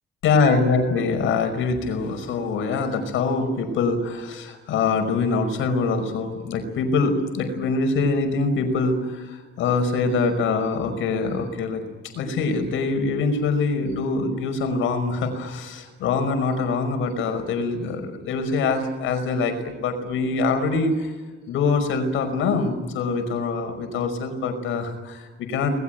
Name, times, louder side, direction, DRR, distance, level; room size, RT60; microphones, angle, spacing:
voice 1, 0.2-11.8 12.1-21.1 21.5-25.8, left 4 dB, 85° left, 6 dB, 5.5 m, -24 dB
25.5 x 21.0 x 9.3 m, 1.3 s
cardioid pair, 90°, 20 cm